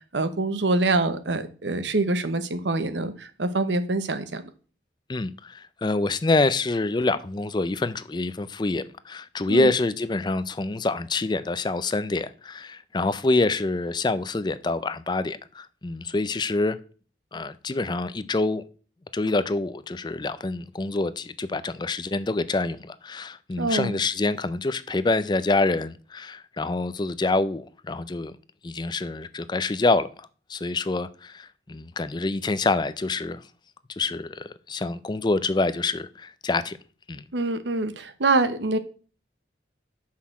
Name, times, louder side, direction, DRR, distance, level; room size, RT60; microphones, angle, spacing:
voice 1, 0.1-4.4 9.5-9.7 23.6-24.0 37.3-38.8, right 2 dB, 85° right, 0.9 m, -25 dB
voice 2, 5.1-16.8 17.3-18.6 19.1-28.4 28.6-33.4 34.0-36.8 37.1-37.2, left 3 dB, 25° left, 0.4 m, -26 dB
6.4 x 5.7 x 5.9 m
head